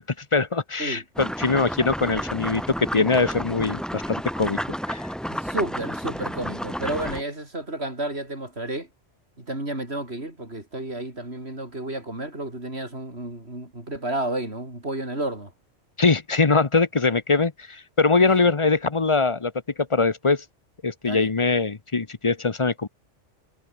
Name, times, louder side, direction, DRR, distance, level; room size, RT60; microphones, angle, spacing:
voice 1, 0.2-4.6 4.9-5.1 16.0-19.5 19.9-20.4 20.8-22.9, left 4 dB, 30° left, 0.9 m, -22 dB
sound 1, 1.1-7.2, equal, ahead, 5.2 m, -31 dB
voice 2, 5.3-8.9 9.4-15.5 18.2-18.5 21.0-21.3, right 1 dB, 60° right, 6.5 m, -31 dB
omnidirectional pair, 1.2 m